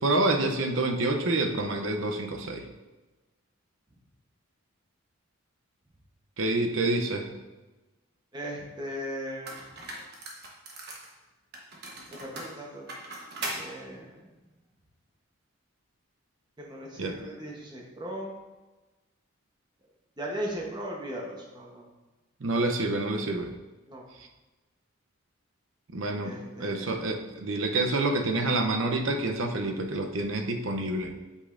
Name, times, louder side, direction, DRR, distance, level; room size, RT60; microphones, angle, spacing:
voice 1, 0.0-2.7 6.4-7.3 17.0-17.2 22.4-23.5 24.2-24.3 25.9-31.1, right 2 dB, 70° right, 5 dB, 0.7 m, -28 dB
voice 2, 8.3-9.6 12.1-12.9 13.5-14.1 16.6-18.3 20.2-21.8 23.9-24.1 26.2-27.0, equal, 20° right, -1 dB, 0.9 m, -37 dB
sound 1, 8.8-8.9 9.5-11.1 11.5-13.6, right 2 dB, 50° right, 1.1 m, -39 dB
8.3 x 5.3 x 2.5 m, 1.2 s
head